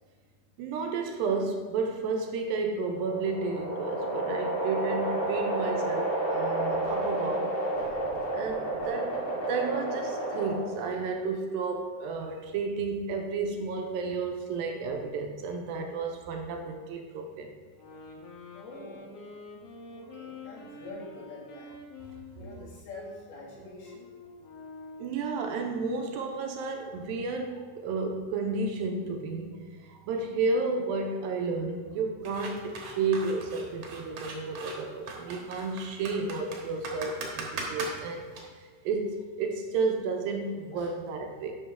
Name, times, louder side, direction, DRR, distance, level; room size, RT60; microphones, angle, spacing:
voice 1, 0.6-7.6 7.9-8.0 8.3-9.2 9.5-17.5 25.0-38.3 38.9-41.5, right 4 dB, 80° right, 3 dB, 2.3 m, -32 dB
sound 1, 2.8-10.9, right 1 dB, 35° left, 2.1 m, -31 dB
sound 2, 17.7-25.3, left 3 dB, 90° left, 1.3 m, -47 dB
voice 2, 18.5-19.1 19.9-21.7 22.3-24.1 40.7-40.9, left 2 dB, 75° left, -5 dB, 3.9 m, -45 dB
sound 3, 32.2-38.4, right 4 dB, 60° right, 1.7 m, -39 dB
11.0 x 6.0 x 3.5 m, 1.5 s
omnidirectional pair, 4.6 m